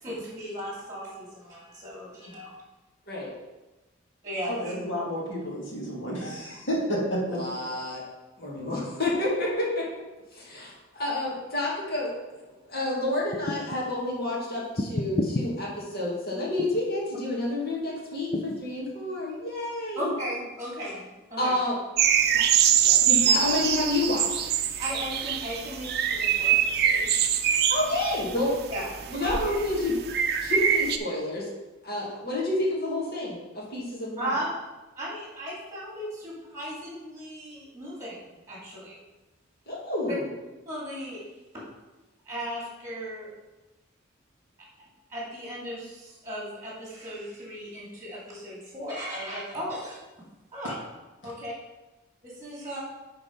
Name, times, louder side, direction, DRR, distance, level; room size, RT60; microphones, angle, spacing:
voice 1, 0.0-2.5 4.2-4.7 20.0-21.5 24.8-27.2 28.7-28.9 34.2-34.5 35.0-38.2 38.5-39.0 40.1-40.2 40.7-41.2 42.3-43.3 44.8-50.0 50.5-50.7 51.2-51.5 52.2-52.8, equal, 15° right, -5 dB, 2.6 m, -36 dB
voice 2, 4.5-7.4 50.6-50.8, equal, 65° left, -3 dB, 2.4 m, -31 dB
voice 3, 7.3-8.0 8.4-9.9 10.3-20.1 21.4-21.8 22.3-22.4 22.7-24.4 27.4-28.5 29.1-30.0 30.4-31.5 31.8-34.4 39.7-40.3, left 1 dB, 50° left, -5 dB, 2.2 m, -29 dB
sound 1, 13.3-13.8 14.8-15.5 16.6-16.9 18.3-18.6, left 2 dB, 30° left, 0.6 m, -29 dB
sound 2, 22.0-31.0, right 9 dB, 50° right, 0.5 m, -24 dB
9.8 x 4.0 x 5.2 m, 1.1 s
head